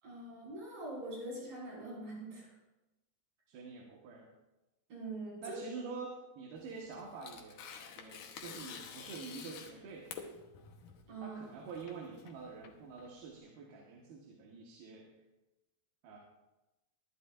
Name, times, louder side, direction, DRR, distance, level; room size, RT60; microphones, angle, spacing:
voice 1, 0.0-2.5 4.9-5.6 11.1-11.6, right 2 dB, 70° right, -5 dB, 7.0 m, -43 dB
voice 2, 3.5-4.3 5.4-7.7 8.0-10.1 11.2-15.1 16.0-16.2, right 4 dB, 85° right, -1 dB, 3.3 m, -47 dB
Tearing, 6.6-13.3, left 6 dB, 65° left, 2.3 m, -49 dB
22.5 x 11.5 x 2.5 m, 1.0 s
omnidirectional pair, 4.3 m